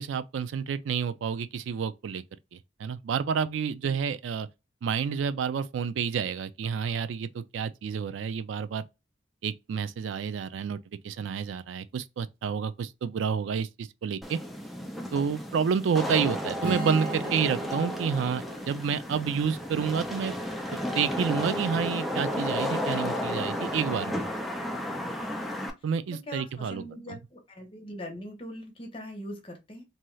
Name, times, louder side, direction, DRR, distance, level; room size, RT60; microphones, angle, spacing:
voice 1, 0.0-2.2 2.5-4.5 4.8-8.8 9.4-14.4 15.1-20.3 21.0-24.2 25.8-27.2, right 6 dB, 85° right, 0.3 m, -29 dB
Wind / Rain, 14.2-25.7, left 1 dB, ahead, 0.3 m, -33 dB
Strum, 16.6-20.8, right 3 dB, 45° right, 0.7 m, -40 dB
voice 2, 26.3-29.8, left 1 dB, 30° left, 0.8 m, -41 dB
2.7 x 2.3 x 3.0 m
head